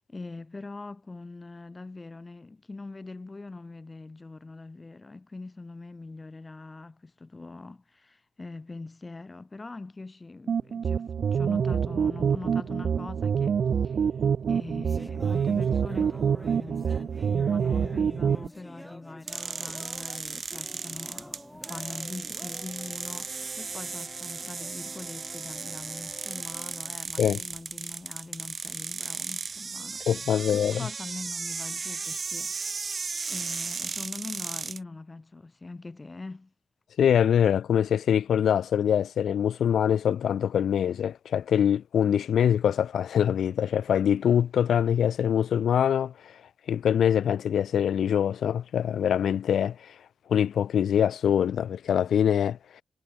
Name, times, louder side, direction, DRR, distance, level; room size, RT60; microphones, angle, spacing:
voice 1, 0.1-13.6 13.8-14.0 14.5-36.5, left 3 dB, 20° left, 5.0 m, -42 dB
sound 1, 10.5-18.5, right 7 dB, 55° right, 0.4 m, -26 dB
sound 2, 14.3-27.8, equal, ahead, 3.3 m, -48 dB
sound 3, 19.3-34.8, right 4 dB, 35° right, 2.3 m, -36 dB
voice 2, 30.1-30.9 37.0-46.3 46.7-49.9 50.3-52.8, left 9 dB, 80° left, 0.3 m, -24 dB
wide cardioid pair, 160°, 0 cm